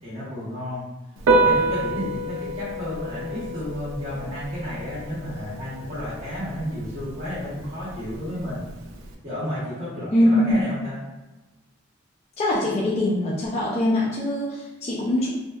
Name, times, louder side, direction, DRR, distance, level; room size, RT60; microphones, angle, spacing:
voice 1, 0.0-0.8 1.3-8.6 9.2-11.0, left 1 dB, 35° right, -10 dB, 0.8 m, -32 dB
Piano, 1.2-9.1, right 2 dB, 85° right, 0.4 m, -28 dB
voice 2, 10.1-10.6 12.4-15.3, left 1 dB, 35° left, -5 dB, 0.3 m, -22 dB
2.7 x 2.1 x 2.3 m, 1.1 s
head